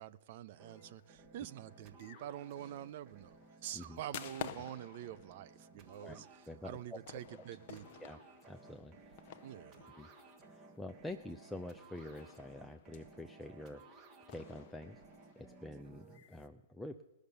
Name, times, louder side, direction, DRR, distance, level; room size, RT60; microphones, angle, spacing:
voice 1, 0.0-8.1 8.9-9.0 9.4-9.8, right 11 dB, 50° right, 0.5 m, -47 dB
sound 1, 0.6-16.2, right 3 dB, 30° right, 1.5 m, -59 dB
sound 2, 0.7-11.1 11.4-11.5 11.9-13.6 14.3-16.5, left 10 dB, 45° left, 0.8 m, -53 dB
voice 2, 6.0-7.0 8.0-8.2 8.5-9.5 10.0-10.1 10.5-15.0 15.4-17.0, left 1 dB, 5° left, 0.5 m, -47 dB
19.0 x 6.5 x 6.9 m
figure-of-eight pair, 115°, 0 cm